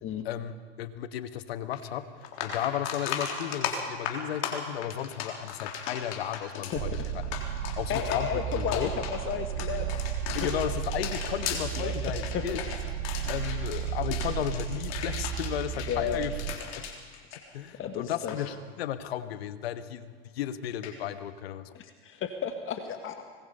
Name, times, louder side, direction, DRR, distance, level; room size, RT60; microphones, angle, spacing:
voice 1, 0.2-2.1 2.4-7.0 7.8-8.9 10.4-12.6 13.3-16.3 16.7-16.9 17.5-21.7, left 11 dB, 80° left, 12 dB, 1.3 m, -34 dB
sound 1, 1.7-1.8 2.2-17.9 18.1-18.4 20.8-20.9, left 7 dB, 60° left, 3.7 m, -37 dB
voice 2, 6.7-7.1 7.6-9.9 10.4-10.5 11.8-12.4 15.9-16.3 17.8-18.4 21.7-23.2, left 8 dB, 40° left, 6 dB, 1.7 m, -33 dB
sound 2, 6.7-16.6, right 9 dB, 80° right, 1.6 m, -34 dB
25.0 x 20.5 x 5.5 m, 1.5 s
hypercardioid pair, 95°, 30 cm